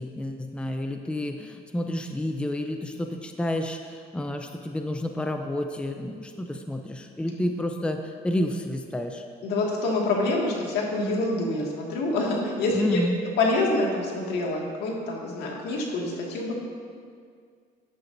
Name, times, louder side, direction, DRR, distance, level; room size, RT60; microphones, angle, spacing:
voice 1, 0.0-9.2 12.7-13.2, left 1 dB, 5° left, 4 dB, 0.6 m, -30 dB
voice 2, 9.4-13.0 13.4-16.5, left 2 dB, 80° left, -2 dB, 2.1 m, -26 dB
13.0 x 9.8 x 2.7 m, 2.1 s
cardioid pair, 110°, 17 cm